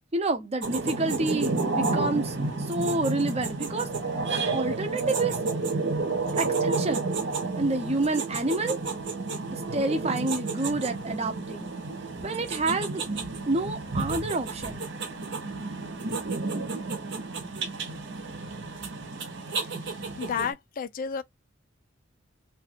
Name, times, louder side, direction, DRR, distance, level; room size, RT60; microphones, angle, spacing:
voice 1, 0.1-3.9 4.3-5.4 6.4-7.1 7.6-8.8 9.5-11.7 12.2-13.0 13.5-14.9, right 2 dB, 30° right, 0.7 m, -28 dB
sound 1, 0.6-20.5, right 3 dB, 60° right, 0.8 m, -31 dB
voice 2, 20.2-21.2, left 6 dB, 45° left, 0.3 m, -31 dB
2.9 x 2.3 x 3.2 m
head